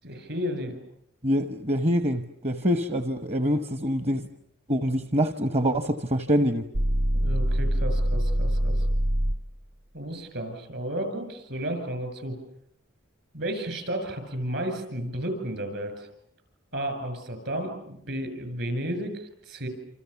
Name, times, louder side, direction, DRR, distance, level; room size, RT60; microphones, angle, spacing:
voice 1, 0.0-0.8 7.1-8.9 9.9-12.4 13.3-16.1 16.7-19.7, right 1 dB, 60° right, 8 dB, 7.8 m, -32 dB
voice 2, 1.2-4.3 4.7-6.6, equal, 35° right, 10 dB, 1.0 m, -25 dB
sound 1, 6.7-9.5, equal, 75° right, 1.4 m, -24 dB
28.0 x 28.0 x 7.0 m, 0.71 s
head